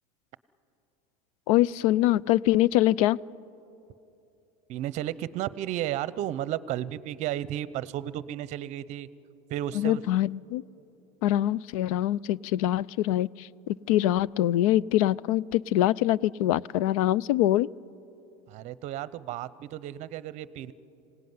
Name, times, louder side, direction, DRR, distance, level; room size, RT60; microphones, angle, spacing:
voice 1, 1.5-3.2 9.7-10.6 11.2-17.7, left 14 dB, 80° left, 24 dB, 0.5 m, -24 dB
voice 2, 4.7-9.1 9.5-10.0 18.5-20.7, right 12 dB, 40° right, 18 dB, 0.7 m, -33 dB
26.0 x 17.5 x 9.5 m, 2.9 s
supercardioid pair, 150°, 18 cm